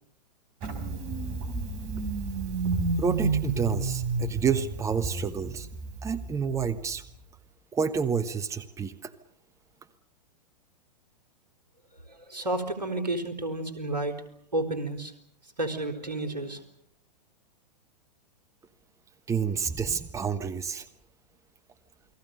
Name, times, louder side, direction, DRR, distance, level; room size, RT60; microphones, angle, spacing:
Engine starting, 0.6-7.1, right 4 dB, 35° right, 4.8 m, -31 dB
voice 1, 3.0-5.7 6.0-7.0 7.7-9.1 19.3-20.9, right 6 dB, 15° right, 12 dB, 1.2 m, -29 dB
voice 2, 12.1-14.2 14.5-15.1 15.6-16.6, right 2 dB, 80° right, 7 dB, 4.3 m, -31 dB
29.0 x 21.5 x 6.7 m, 0.71 s
figure-of-eight pair, 105°, 21 cm